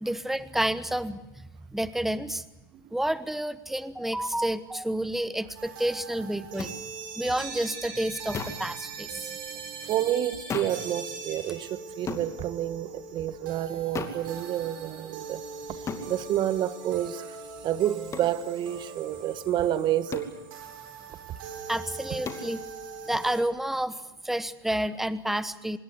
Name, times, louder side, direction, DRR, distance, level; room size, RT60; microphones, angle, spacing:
voice 1, 0.0-1.2 1.7-2.4 2.9-6.7 7.2-9.4 21.7-22.6 23.1-24.0 24.2-25.8, right 1 dB, ahead, 1.1 m, -29 dB
sound 1, 5.5-23.4, right 5 dB, 65° right, 5.6 m, -41 dB
sound 2, 6.6-6.8 8.3-8.7 10.5-10.8 12.1-12.3 13.9-14.2 15.9-16.1 18.1-18.4 20.1-20.4 22.2-22.5, left 5 dB, 25° left, 2.6 m, -34 dB
voice 2, 9.9-15.4 15.7-15.8 16.1-17.4 17.6-20.3, right 11 dB, 40° right, 1.4 m, -29 dB
25.0 x 20.5 x 8.1 m
hypercardioid pair, 95°, 12 cm